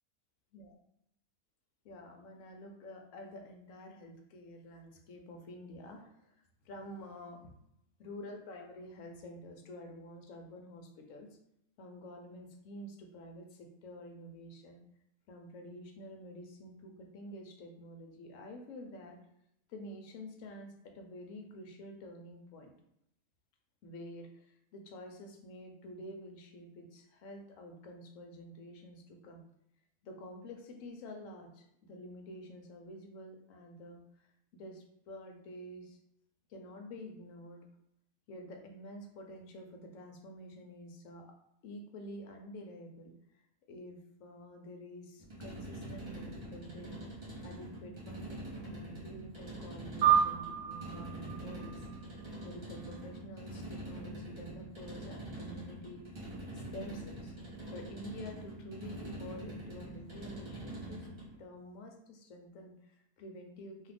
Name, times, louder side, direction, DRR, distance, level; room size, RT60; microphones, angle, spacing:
voice 1, 1.8-7.5 8.0-11.3 11.8-14.8 15.3-19.2 19.7-22.7 23.8-29.4 30.0-36.0 36.5-37.6 38.3-41.3 41.6-43.4 43.7-47.0 47.4-51.9 52.4-56.1 56.5-57.3 57.7-61.1 61.4-63.9, left 1 dB, 65° left, 3 dB, 0.9 m, -49 dB
sound 1, 45.2-61.4, right 1 dB, 35° right, 0.4 m, -45 dB
sound 2, 50.0-52.7, right 8 dB, 85° right, 1.1 m, -31 dB
2.7 x 2.4 x 3.3 m, 0.77 s
omnidirectional pair, 1.6 m